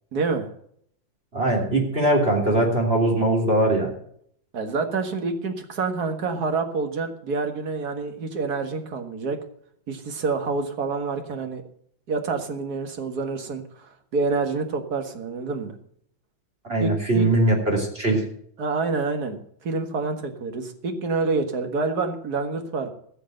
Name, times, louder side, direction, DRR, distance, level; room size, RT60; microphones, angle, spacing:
voice 1, 0.1-0.5 4.5-9.4 9.9-11.6 12.1-15.8 16.8-17.3 18.6-22.9, right 4 dB, 55° right, 6 dB, 2.1 m, -27 dB
voice 2, 1.3-3.9 16.7-18.2, right 1 dB, 30° right, 0 dB, 3.4 m, -21 dB
15.5 x 6.6 x 7.8 m, 0.66 s
omnidirectional pair, 2.1 m